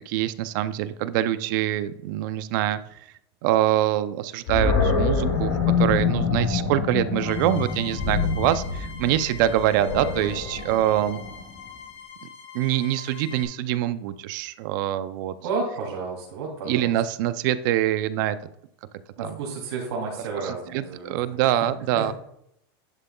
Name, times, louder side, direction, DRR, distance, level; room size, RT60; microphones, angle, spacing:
voice 1, 0.1-3.0 3.4-11.2 12.5-15.3 16.7-18.4 19.2-19.3 20.4-22.1, right 12 dB, 50° right, 14 dB, 0.4 m, -24 dB
Animal, 4.5-11.6, left 5 dB, 60° left, 3.0 m, -26 dB
sound 1, 7.1-13.4, left 6 dB, 40° left, 2.2 m, -43 dB
voice 2, 15.4-16.9 19.2-21.5 22.0-22.1, right 4 dB, 75° right, -4 dB, 2.7 m, -31 dB
11.0 x 7.5 x 2.2 m, 0.75 s
supercardioid pair, 155°, 13 cm